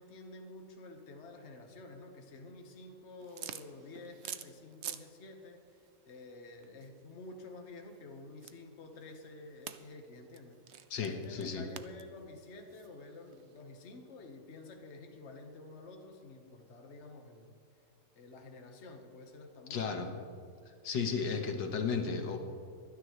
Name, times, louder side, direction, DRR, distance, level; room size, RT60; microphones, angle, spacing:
voice 1, 0.0-17.5 18.1-20.3, left 2 dB, 40° left, 3 dB, 1.5 m, -50 dB
sound 1, 3.2-5.1 5.4-13.6, right 9 dB, 80° right, 0.6 m, -48 dB
voice 2, 10.9-11.7 19.7-20.1 20.8-22.4, left 5 dB, 90° left, 4 dB, 2.0 m, -34 dB
24.0 x 9.8 x 3.2 m, 2.3 s
omnidirectional pair, 1.9 m